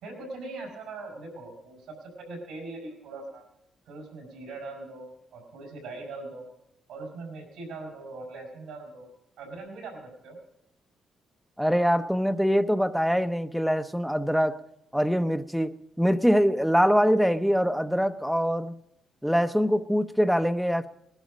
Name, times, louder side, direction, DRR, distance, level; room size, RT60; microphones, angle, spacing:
voice 1, 0.0-3.4 3.9-6.5 6.9-9.1 9.4-10.4, right 3 dB, 90° right, 0 dB, 5.2 m, -41 dB
voice 2, 11.6-14.6 14.9-18.8 19.2-20.9, equal, ahead, 10 dB, 0.7 m, -24 dB
19.0 x 11.5 x 5.2 m, 0.82 s
supercardioid pair, 60°, 0 cm